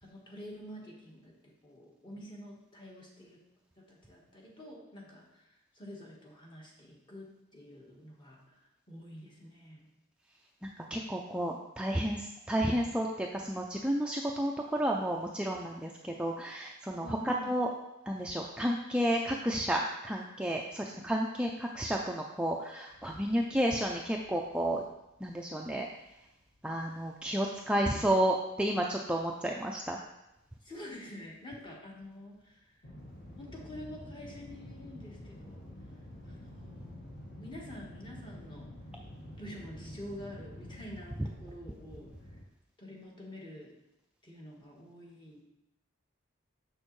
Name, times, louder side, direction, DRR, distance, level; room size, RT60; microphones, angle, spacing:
voice 1, 0.0-3.4 3.8-9.9 17.0-17.5 30.6-32.7 33.4-35.6 36.3-38.7 39.4-42.1 42.8-43.7 44.2-45.4, left 1 dB, 25° left, -2 dB, 1.3 m, -48 dB
voice 2, 10.6-17.7 18.1-24.8 25.2-25.9 26.6-30.0, right 1 dB, 5° right, 0 dB, 0.4 m, -31 dB
sound 1, 22.9-25.6 25.8-28.3 28.6-31.7 32.0-42.4, left 1 dB, 45° left, 1.1 m, -49 dB
7.0 x 6.4 x 3.1 m, 0.89 s
head